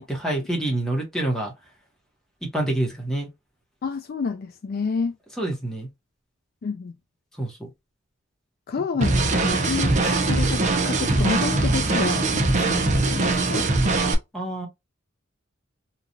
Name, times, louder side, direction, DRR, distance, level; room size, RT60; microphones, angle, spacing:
voice 1, 0.0-1.5 2.4-3.3 5.4-5.9 7.4-7.7 8.9-9.2 9.8-10.0 14.3-14.7, right 1 dB, 5° left, 1.0 m, -27 dB
voice 2, 3.8-5.1 6.6-7.0 8.7-13.7, left 5 dB, 50° left, 0.3 m, -29 dB
sound 1, 9.0-14.1, right 2 dB, 35° right, 0.6 m, -21 dB
2.9 x 2.3 x 2.4 m
head